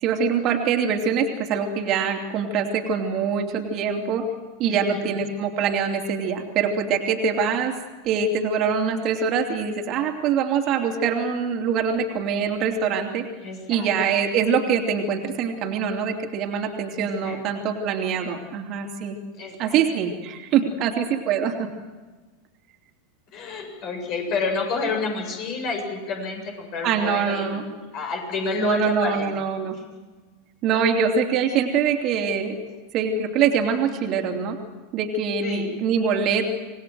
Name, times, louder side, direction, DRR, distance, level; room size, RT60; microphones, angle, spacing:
voice 1, 0.0-4.2 4.6-7.7 8.0-13.2 13.7-19.2 19.6-21.7 26.8-27.6 28.6-29.7 30.6-32.6 32.9-34.6 34.9-36.5, right 6 dB, 45° right, 3 dB, 2.9 m, -24 dB
voice 2, 4.7-5.1 13.4-13.9 17.0-17.4 19.3-19.8 23.3-27.6 27.9-29.2 29.7-29.8 32.7-32.8 35.4-35.7, left 4 dB, 45° left, 3 dB, 7.7 m, -29 dB
27.0 x 19.5 x 7.8 m, 1.3 s
figure-of-eight pair, 90°, 0 cm